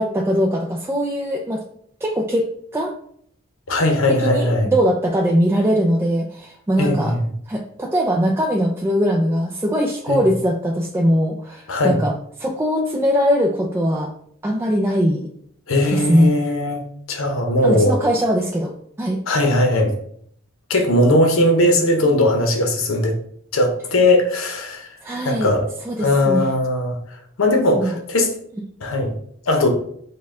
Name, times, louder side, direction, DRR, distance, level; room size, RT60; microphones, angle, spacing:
voice 1, 0.0-1.6 2.0-2.9 4.1-7.2 7.5-12.1 12.4-14.1 14.4-15.3 15.9-16.4 17.6-18.7 19.0-19.2 25.0-25.5 25.9-26.5 27.7-28.0, equal, 10° right, 0 dB, 0.3 m, -20 dB
voice 2, 3.7-4.7 6.8-7.3 10.1-10.2 11.7-12.0 15.7-16.8 17.1-18.0 19.3-19.9 20.7-23.1 23.5-24.9 25.2-25.7 26.0-28.3 28.8-29.1 29.5-29.7, left 1 dB, 85° left, 3 dB, 0.8 m, -18 dB
5.3 x 2.2 x 3.6 m, 0.66 s
head